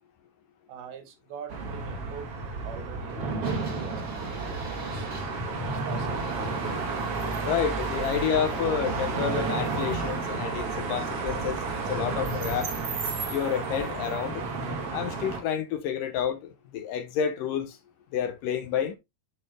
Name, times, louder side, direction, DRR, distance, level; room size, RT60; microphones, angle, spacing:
voice 1, 0.7-2.4 2.7-5.1 5.6-6.5, right 7 dB, 80° right, 3.4 m, -43 dB
sound 1, 1.5-15.4, right 3 dB, 45° right, 2.3 m, -31 dB
sound 2, 3.4-12.8, right 1 dB, 25° right, 4.8 m, -47 dB
voice 2, 7.4-11.6 11.9-12.7 13.3-14.4 14.9-17.7 18.1-19.0, left 8 dB, 70° left, 2.5 m, -29 dB
8.8 x 6.8 x 2.2 m
omnidirectional pair, 4.3 m